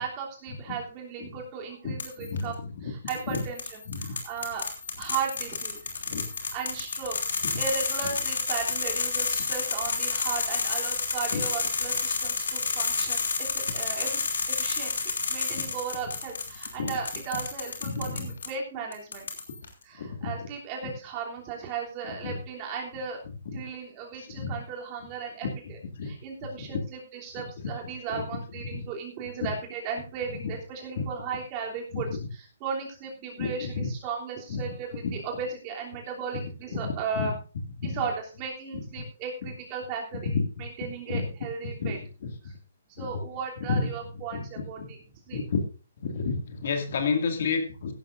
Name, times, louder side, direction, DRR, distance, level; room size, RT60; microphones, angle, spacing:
voice 1, 0.0-2.5 2.8-4.7 5.0-5.8 6.5-19.3 19.8-23.2 23.5-37.3 37.8-42.0 42.4-42.5 42.9-45.0 45.3-45.4, right 6 dB, 25° right, -1 dB, 3.1 m, -36 dB
sound 1, 2.0-2.4 3.1-18.5 18.9-19.7, left 5 dB, 85° left, 3.2 m, -30 dB
voice 2, 2.2-2.5 3.3-3.4 3.9-4.2 6.1-6.2 11.3-11.4 15.5-15.6 16.8-16.9 17.8-18.3 20.0-20.3 22.2-22.4 24.4-24.5 26.0-26.1 28.7-28.8 31.0-31.1 31.9-32.0 33.4-33.9 34.5-34.6 35.0-35.1 36.8-37.3 37.8-38.0 40.3-40.4 41.1-41.2 41.8-42.0 42.2-42.3 43.0-43.1 43.7-43.9 44.3-44.4 44.8-44.9 45.3-45.6 46.0-47.9, left 4 dB, 55° left, 5 dB, 2.3 m, -30 dB
16.0 x 11.5 x 2.6 m, 0.35 s
hypercardioid pair, 165°, 0 cm